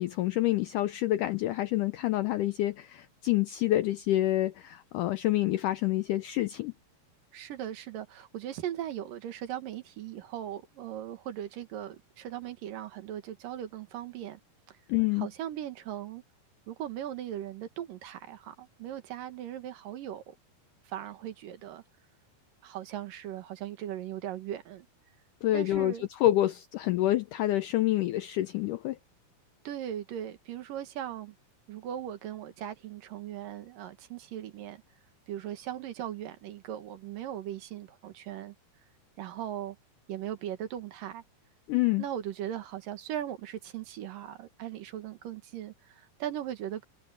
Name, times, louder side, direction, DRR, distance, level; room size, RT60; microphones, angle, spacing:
voice 1, 0.0-6.7 14.9-15.3 25.4-25.9 26.2-29.0 41.7-42.0, left 15 dB, 85° left, 1.8 m, -27 dB
voice 2, 7.3-14.4 14.7-14.8 15.2-16.2 16.7-20.3 20.9-21.8 22.6-24.9 25.5-26.1 29.6-31.4 31.7-34.8 35.3-38.5 39.2-39.8 40.1-41.2 42.0-46.8, right 11 dB, 65° right, 3.0 m, -38 dB
omnidirectional pair, 4.4 m